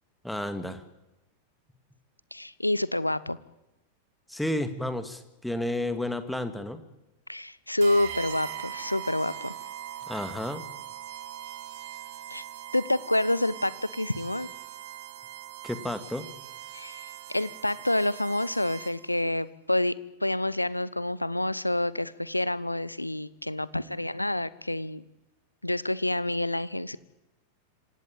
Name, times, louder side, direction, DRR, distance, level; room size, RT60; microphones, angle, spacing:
voice 1, 0.2-0.8 4.3-6.8 10.1-10.6 15.6-16.3, left 1 dB, 5° left, 10 dB, 2.3 m, -31 dB
voice 2, 2.3-3.4 7.3-9.5 12.3-12.4 12.7-14.5 16.7-25.0 25.6-27.0, left 1 dB, 85° left, 19 dB, 0.9 m, -28 dB
sound 1, 7.8-19.2, right 11 dB, 55° right, 3.4 m, -41 dB
27.0 x 16.5 x 8.9 m, 0.97 s
figure-of-eight pair, 90°, 0 cm